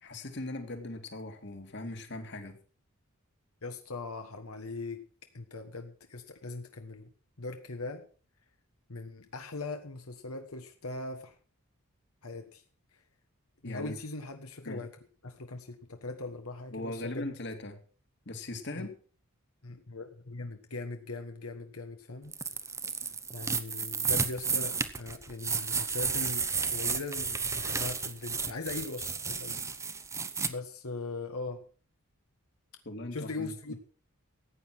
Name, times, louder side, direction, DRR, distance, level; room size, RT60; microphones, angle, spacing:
voice 1, 0.0-2.6 13.6-13.9 14.6-14.9 16.7-17.8 18.3-18.9 32.9-33.7, left 2 dB, 55° left, 6 dB, 2.2 m, -39 dB
voice 2, 3.6-5.0 5.3-7.1 7.4-8.0 8.9-11.4 12.2-12.6 12.9-13.0 13.6-14.9 15.2-17.3 18.7-18.9 19.6-22.3 23.3-29.6 30.5-31.6 33.1-33.7, left 3 dB, 85° left, 6 dB, 1.4 m, -40 dB
sound 1, 22.3-30.5, right 5 dB, 15° right, 0.7 m, -32 dB
15.0 x 9.2 x 6.1 m, 0.41 s
head